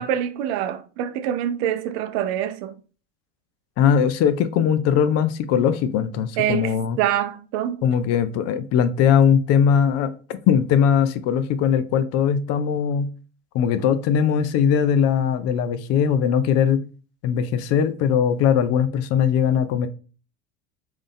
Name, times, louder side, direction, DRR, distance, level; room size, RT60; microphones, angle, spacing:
voice 1, 0.0-2.8 6.4-7.9, right 10 dB, 60° right, 0.6 m, -25 dB
voice 2, 3.8-7.0 7.8-13.1 13.5-16.8 17.2-19.9, left 8 dB, 45° left, 0.5 m, -20 dB
3.5 x 2.7 x 3.4 m
hypercardioid pair, 80°, 37 cm